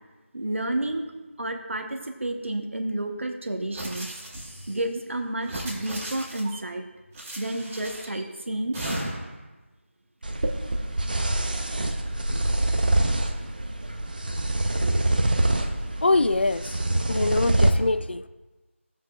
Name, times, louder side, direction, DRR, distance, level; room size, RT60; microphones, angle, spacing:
voice 1, 0.3-1.0 1.4-4.1 4.7-6.8 7.4-8.8, right 1 dB, 65° right, 1.1 m, -30 dB
sound 1, 3.7-4.8 5.4-6.6 7.1-8.2 8.7-9.4, right 1 dB, 5° right, 1.0 m, -35 dB
sound 2, 10.2-17.7, right 1 dB, 40° right, 0.7 m, -25 dB
voice 2, 16.0-16.8 17.1-18.3, left 2 dB, 50° left, 0.3 m, -24 dB
15.0 x 7.5 x 2.4 m
figure-of-eight pair, 175°, 7 cm